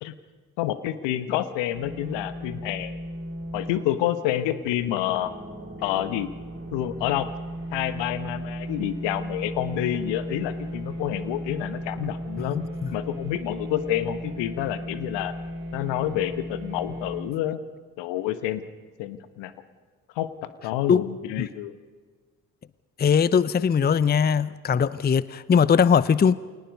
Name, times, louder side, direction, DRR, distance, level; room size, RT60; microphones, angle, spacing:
voice 1, 0.6-2.9 3.5-5.3 5.8-6.3 6.7-7.3 7.7-12.6 12.9-15.3 15.7-17.6 18.0-18.6 19.0-19.5 20.1-20.3 20.6-21.8, left 12 dB, 70° left, 12 dB, 1.4 m, -28 dB
sound 1, 1.7-17.2, equal, 25° right, 6.8 m, -36 dB
voice 2, 12.4-12.9 20.9-21.0 21.4-21.5 23.0-26.4, left 7 dB, 20° left, 18 dB, 0.7 m, -21 dB
29.0 x 22.0 x 5.3 m, 1.4 s
figure-of-eight pair, 45°, 45 cm